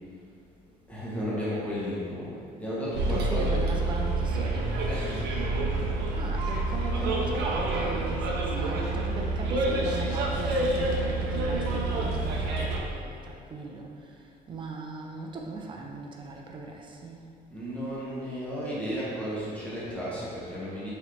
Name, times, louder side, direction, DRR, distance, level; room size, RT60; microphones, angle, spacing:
voice 1, 0.9-2.3 2.6-3.6 4.9-5.3 17.5-20.9, equal, 10° left, -9 dB, 1.3 m, -33 dB
Bus, 2.9-12.8, right 2 dB, 80° right, 0.6 m, -28 dB
voice 2, 3.1-4.7 6.1-13.9 14.5-17.2, right 3 dB, 30° right, 0 dB, 0.5 m, -38 dB
3.9 x 3.0 x 3.1 m, 2.4 s
cardioid pair, 110°, 17 cm